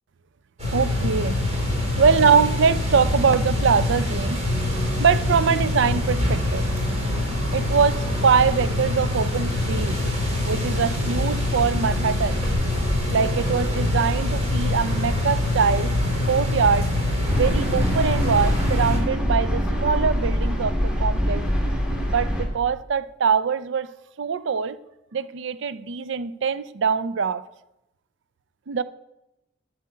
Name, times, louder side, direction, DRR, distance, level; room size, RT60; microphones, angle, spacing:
sound 1, 0.6-19.0, left 1 dB, 40° right, 4.5 m, -24 dB
voice 1, 0.7-1.4 2.0-4.4 4.7-6.7 7.5-10.0 10.4-12.6 13.1-15.9 16.2-16.9 17.3-21.5 22.1-23.9 24.2-24.8 25.1-27.4 28.7-28.8, right 6 dB, 65° right, 0.5 m, -23 dB
sound 2, 17.3-22.4, equal, 5° right, 2.0 m, -24 dB
8.9 x 7.5 x 8.3 m
head